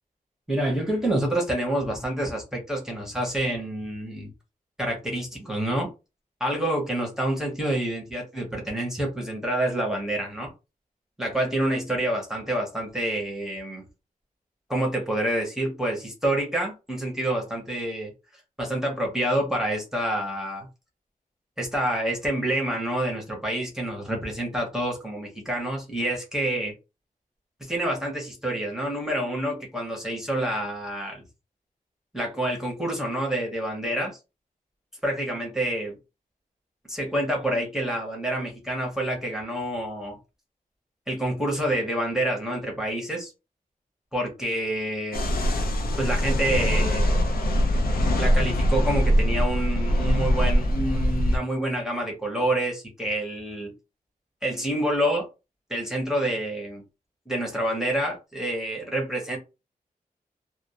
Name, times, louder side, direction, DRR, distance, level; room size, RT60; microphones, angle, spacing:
voice 1, 0.5-4.3 4.8-5.9 6.4-10.5 11.2-13.8 14.7-18.1 18.6-20.7 21.6-26.7 27.6-31.2 32.1-34.2 35.0-36.0 36.9-40.2 41.1-43.3 44.1-45.3 46.0-47.2 48.2-53.7 54.4-55.3 55.7-56.8 57.3-59.4, right 1 dB, 5° right, 0.7 m, -27 dB
sound 1, 45.1-51.4, equal, 85° left, 0.5 m, -22 dB
2.1 x 2.1 x 2.7 m
wide cardioid pair, 160°, 15 cm